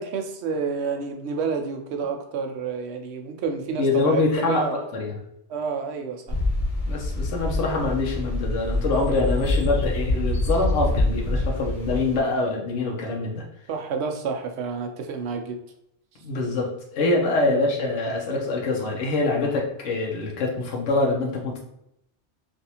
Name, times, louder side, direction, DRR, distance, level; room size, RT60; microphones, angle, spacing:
voice 1, 0.0-4.8 5.5-6.4 13.7-15.6 17.5-17.7, right 5 dB, 70° right, 4 dB, 0.8 m, -29 dB
voice 2, 3.8-5.2 6.9-13.4 16.2-21.6, left 3 dB, 85° left, -1 dB, 1.0 m, -25 dB
sound 1, 6.3-12.2, left 2 dB, 40° left, 0.6 m, -25 dB
3.3 x 2.5 x 2.8 m, 0.80 s
omnidirectional pair, 1.2 m